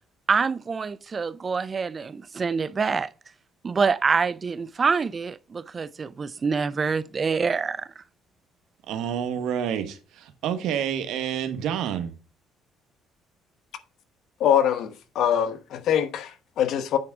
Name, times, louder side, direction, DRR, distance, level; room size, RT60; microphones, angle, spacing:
voice 1, 0.3-3.1 3.6-7.9, right 5 dB, 30° right, 0.4 m, -26 dB
voice 2, 8.9-12.1, right 9 dB, 75° right, 1.3 m, -28 dB
voice 3, 14.4-17.0, left 9 dB, 65° left, 1.0 m, -23 dB
9.0 x 3.5 x 5.9 m
cardioid pair, 105°, 0 cm